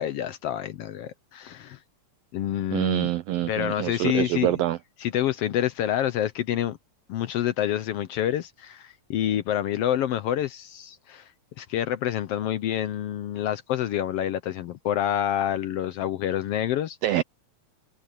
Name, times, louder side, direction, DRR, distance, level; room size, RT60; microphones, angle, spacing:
voice 1, 0.0-1.8 2.3-3.1 3.5-4.6 5.0-6.8 7.1-11.3 11.6-17.0, left 11 dB, 75° left, 1.5 m, -27 dB
voice 2, 2.7-4.8 17.0-17.2, right 14 dB, 90° right, 1.4 m, -25 dB
omnidirectional pair, 3.3 m